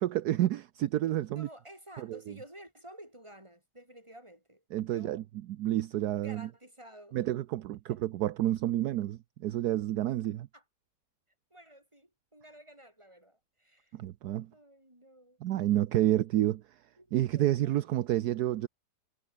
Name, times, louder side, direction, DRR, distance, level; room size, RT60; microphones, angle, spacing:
voice 1, 0.0-1.5 2.0-2.2 4.7-5.2 5.6-6.5 7.1-10.5 13.9-14.5 15.4-16.8 17.1-18.7, right 13 dB, 75° right, 1.2 m, -29 dB
voice 2, 1.2-4.6 4.9-5.2 6.2-7.2 7.9-8.0 10.5-10.6 11.5-14.0 14.5-15.4 17.0-17.9, right 1 dB, 15° right, 7.6 m, -52 dB
omnidirectional pair, 1.8 m